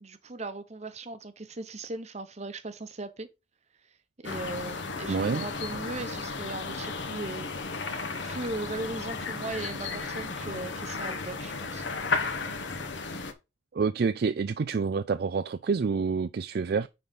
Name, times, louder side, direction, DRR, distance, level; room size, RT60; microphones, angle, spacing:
voice 1, 0.0-3.3 4.2-7.8 8.2-11.9, right 2 dB, 35° right, 0.9 m, -38 dB
sound 1, 4.2-13.3, left 4 dB, 60° left, 1.2 m, -34 dB
voice 2, 5.1-5.4 13.7-16.9, right 5 dB, 50° right, 0.4 m, -28 dB
9.8 x 4.0 x 5.3 m
head